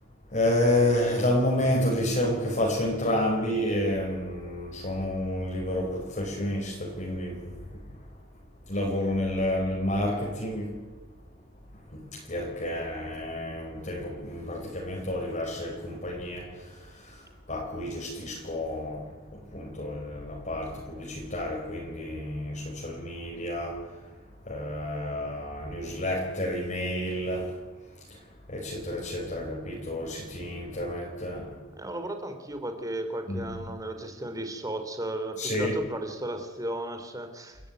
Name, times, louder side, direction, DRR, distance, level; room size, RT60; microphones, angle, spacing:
voice 1, 0.3-7.5 8.7-10.8 11.9-17.2 17.5-23.8 24.4-27.5 28.1-28.2 28.5-31.6 33.3-33.6 35.4-35.8, left 1 dB, 40° left, 4.8 m, -30 dB
voice 2, 31.8-37.6, right 1 dB, 20° right, 3.3 m, -35 dB
29.0 x 13.5 x 9.3 m
head